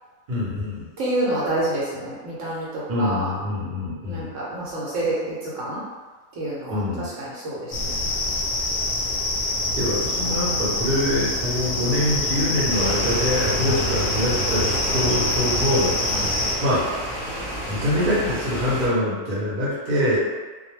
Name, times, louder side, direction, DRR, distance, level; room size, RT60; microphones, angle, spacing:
voice 1, 0.3-0.9 2.9-4.3 6.7-7.1 9.7-16.9 17.7-20.2, left 1 dB, 45° right, -7 dB, 0.8 m, -24 dB
voice 2, 1.0-3.3 4.1-5.8 6.4-8.0 10.2-10.5 13.6-13.8 16.1-16.3, right 1 dB, 70° right, -6 dB, 0.9 m, -28 dB
sound 1, 7.7-16.5, left 2 dB, 55° left, 0.6 m, -25 dB
sound 2, 12.7-18.9, equal, 15° left, 0.6 m, -30 dB
2.2 x 2.1 x 3.1 m, 1.4 s
omnidirectional pair, 1.4 m